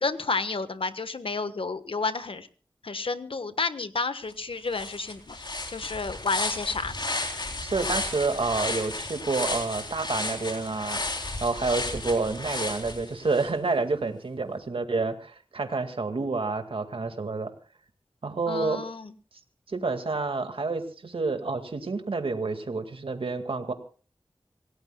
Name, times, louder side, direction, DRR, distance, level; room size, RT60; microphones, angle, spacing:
voice 1, 0.0-2.5 2.8-5.4 5.7-6.9 18.5-19.1, left 4 dB, 80° left, 11 dB, 1.3 m, -30 dB
sound 1, 4.3-4.4 4.7-13.5, left 2 dB, 55° left, 3.6 m, -33 dB
voice 2, 7.6-11.0 11.4-17.5 18.2-18.8 19.7-23.7, right 3 dB, 80° right, 7 dB, 2.0 m, -29 dB
26.5 x 17.0 x 2.3 m, 0.38 s
wide cardioid pair, 55°, 9 cm